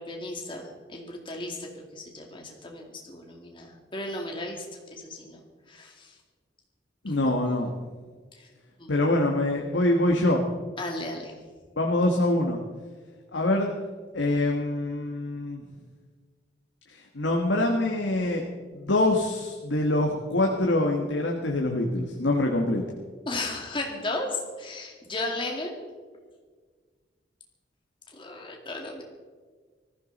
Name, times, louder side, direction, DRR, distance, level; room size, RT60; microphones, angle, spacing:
voice 1, 0.0-4.7 4.9-5.4 5.7-6.1 7.1-7.2 8.4-8.5 8.8-8.9 10.8-11.3 23.3-25.8 28.1-29.0, left 2 dB, 25° left, 1 dB, 2.5 m, -35 dB
voice 2, 7.0-7.7 8.9-10.4 11.8-12.6 13.3-13.7 14.1-15.6 16.9-18.4 18.7-22.8, left 1 dB, 80° left, 1 dB, 1.5 m, -24 dB
19.5 x 14.5 x 4.1 m, 1.5 s
head